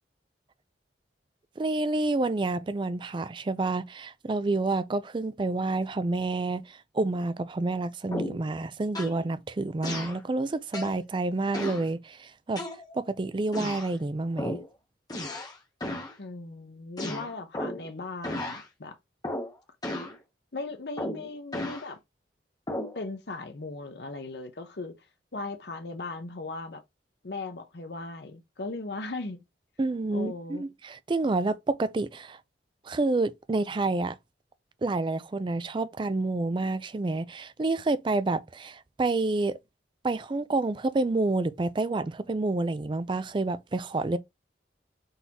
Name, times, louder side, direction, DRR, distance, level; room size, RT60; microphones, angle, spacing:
voice 1, 1.6-12.6 12.9-14.6 29.8-32.4 32.9-34.2 34.8-39.6 40.0-44.2, right 2 dB, 25° right, 0.4 m, -29 dB
sound 1, 8.1-8.5 8.9-9.2 9.8-10.2 10.7-11.0 11.5-11.9 12.6-13.1 13.5-13.9 14.4-14.7 15.1-15.6 15.8-16.1 17.0-17.9 18.2-18.6 19.2-19.5 19.8-20.2 21.0-21.9 22.7-23.0, left 1 dB, 20° left, 0.9 m, -34 dB
voice 2, 16.2-19.0 20.5-22.0 22.9-24.9 25.3-26.8 27.2-29.4 30.1-30.7, left 3 dB, 65° left, 0.8 m, -38 dB
4.0 x 3.7 x 2.8 m
head